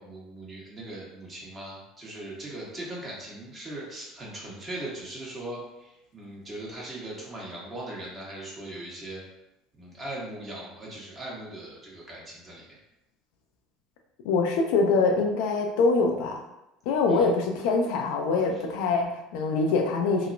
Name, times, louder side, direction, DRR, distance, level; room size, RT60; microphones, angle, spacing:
voice 1, 0.0-9.2 9.8-12.8 17.1-17.3, right 1 dB, 30° right, -4 dB, 1.1 m, -39 dB
voice 2, 14.2-16.4 16.9-20.3, left 3 dB, 75° left, 2 dB, 0.4 m, -24 dB
2.9 x 2.1 x 2.5 m, 0.92 s
hypercardioid pair, 80°, 0 cm